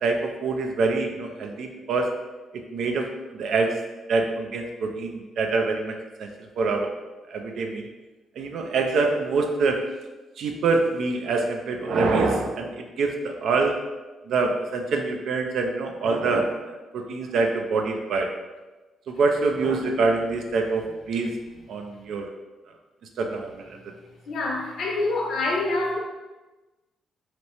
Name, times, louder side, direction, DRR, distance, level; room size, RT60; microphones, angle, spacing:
voice 1, 0.0-2.1 2.5-3.8 4.1-6.9 7.3-7.9 8.4-9.8 10.4-13.8 14.3-18.3 19.1-21.4 21.7-22.3 23.2-23.8, right 3 dB, 70° right, 3 dB, 0.4 m, -25 dB
voice 2, 24.3-26.0, left 2 dB, 65° left, -1 dB, 0.7 m, -26 dB
2.9 x 2.7 x 3.0 m, 1.2 s
cardioid pair, 90°, 0 cm